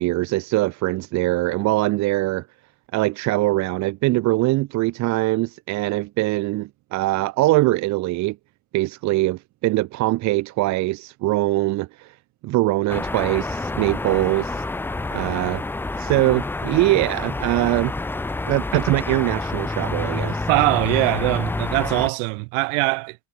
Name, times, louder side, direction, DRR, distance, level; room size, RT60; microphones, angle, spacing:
voice 1, 0.0-2.5 2.9-8.4 8.7-12.1 12.4-14.6 15.1-15.6 16.0-17.9 18.5-20.5, right 19 dB, 40° right, 2.3 m, -22 dB
sound 1, 12.9-22.1, left 2 dB, 5° left, 1.0 m, -28 dB
voice 2, 20.5-23.2, right 37 dB, 65° right, 4.9 m, -22 dB
cardioid pair, 175°, 42 cm